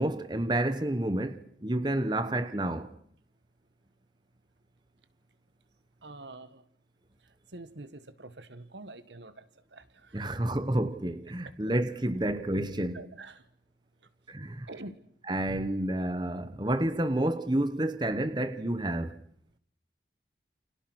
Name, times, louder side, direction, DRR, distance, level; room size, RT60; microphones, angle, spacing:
voice 1, 0.0-2.9 10.1-13.0 14.3-14.7 15.3-19.2, right 1 dB, 25° right, 1.1 m, -29 dB
voice 2, 6.0-6.6 7.5-9.4 9.7-10.4 12.9-13.4 14.7-14.9, right 2 dB, 85° right, 1.7 m, -46 dB
29.5 x 27.0 x 6.4 m
head